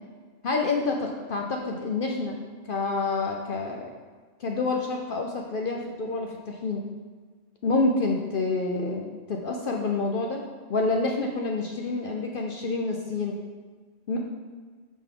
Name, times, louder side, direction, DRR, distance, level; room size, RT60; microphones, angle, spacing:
voice 1, 0.4-2.4 2.6-3.9 4.4-6.8 7.6-10.4 10.7-13.4 14.1-14.2, left 3 dB, 55° left, 1 dB, 0.7 m, -28 dB
6.3 x 5.1 x 3.8 m, 1.4 s
omnidirectional pair, 1.3 m